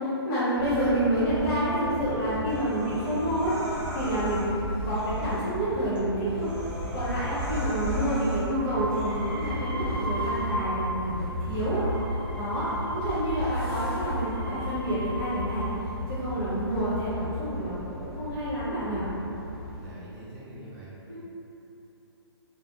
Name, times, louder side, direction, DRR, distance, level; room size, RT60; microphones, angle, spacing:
voice 1, 0.0-4.5 4.8-6.5 6.9-11.8 12.4-15.7 16.1-19.1 21.1-21.2, right 1 dB, 45° left, -16 dB, 1.0 m, -28 dB
sound 1, 0.6-19.9, equal, 15° left, 1.1 m, -34 dB
Human voice, 2.4-4.5 4.9-5.5 6.0-6.1 6.3-8.5 8.9-9.5, right 1 dB, 5° right, 0.3 m, -40 dB
sound 2, 8.5-11.1 11.4-16.0 16.7-17.3, equal, 70° right, 0.8 m, -36 dB
voice 2, 12.6-13.1 19.7-20.9, right 1 dB, 40° right, -10 dB, 0.7 m, -45 dB
2.6 x 2.3 x 2.5 m, 2.9 s
hypercardioid pair, 150°, 14 cm